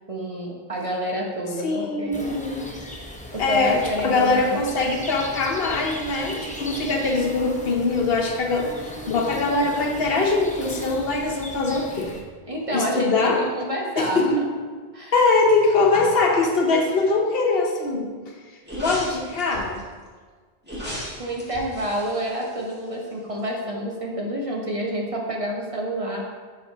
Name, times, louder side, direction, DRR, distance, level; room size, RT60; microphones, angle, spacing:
voice 1, 0.1-2.4 3.3-4.7 12.5-14.4 14.9-15.1 21.2-26.2, equal, 35° right, -2 dB, 0.9 m, -28 dB
voice 2, 1.6-2.7 3.4-12.1 12.7-13.4 14.0-14.4 15.1-18.1 18.8-19.8, left 3 dB, 70° left, 1 dB, 1.0 m, -22 dB
sound 1, 2.1-12.2, left 1 dB, 10° left, 0.5 m, -37 dB
sound 2, 18.6-19.8 20.6-23.1 23.4-23.5, equal, 10° right, 1.6 m, -36 dB
7.3 x 5.9 x 2.8 m, 1.5 s
omnidirectional pair, 1.0 m